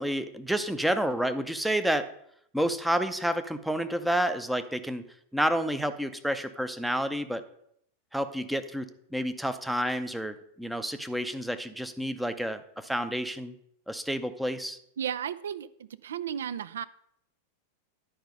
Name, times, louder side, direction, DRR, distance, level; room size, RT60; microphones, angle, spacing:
voice 1, 0.0-2.1 2.5-5.0 5.3-7.4 8.1-13.5 13.9-14.8, equal, ahead, 10 dB, 0.6 m, -29 dB
voice 2, 15.0-16.8, right 9 dB, 65° right, 17 dB, 0.4 m, -34 dB
10.5 x 5.0 x 5.2 m, 0.72 s
figure-of-eight pair, 90°, 0 cm